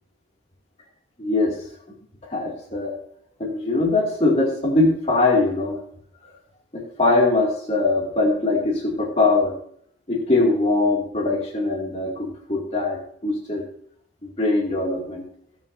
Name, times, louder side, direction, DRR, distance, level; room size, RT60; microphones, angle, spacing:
voice 1, 1.2-1.6 2.2-3.0 3.4-5.8 6.7-9.5 10.1-13.6 14.2-15.3, left 2 dB, 35° left, -1 dB, 2.6 m, -22 dB
19.0 x 6.8 x 2.7 m, 0.65 s
head